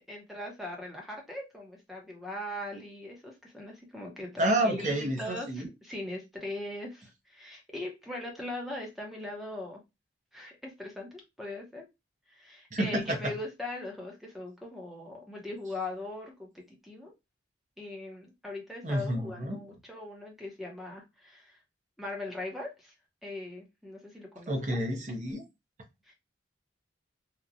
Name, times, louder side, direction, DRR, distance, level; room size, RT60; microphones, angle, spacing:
voice 1, 0.0-9.8 10.3-11.9 12.3-17.1 17.8-21.6 22.0-22.9 23.2-24.8 26.1-26.2, left 2 dB, ahead, 0.7 m, -40 dB
voice 2, 4.4-5.7 12.7-13.3 18.8-19.6 24.5-25.4, right 1 dB, 40° right, 0.7 m, -29 dB
2.9 x 2.1 x 2.4 m
head